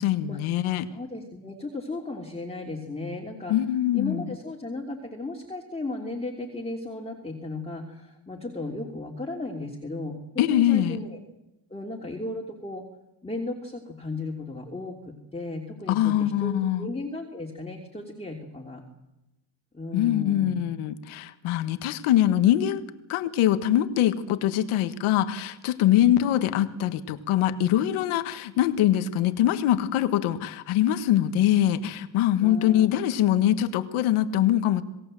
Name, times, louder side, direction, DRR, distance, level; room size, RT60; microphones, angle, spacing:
voice 1, 0.0-0.9 3.5-4.3 10.4-11.0 15.9-16.9 19.9-22.8 23.1-34.8, left 12 dB, 90° left, 11 dB, 1.7 m, -23 dB
voice 2, 0.9-3.6 3.9-11.2 11.7-12.8 13.2-18.8 19.7-20.6 32.4-33.0, left 2 dB, 10° left, 0 dB, 3.1 m, -35 dB
27.5 x 18.0 x 7.8 m, 0.96 s
cardioid pair, 105°, 48 cm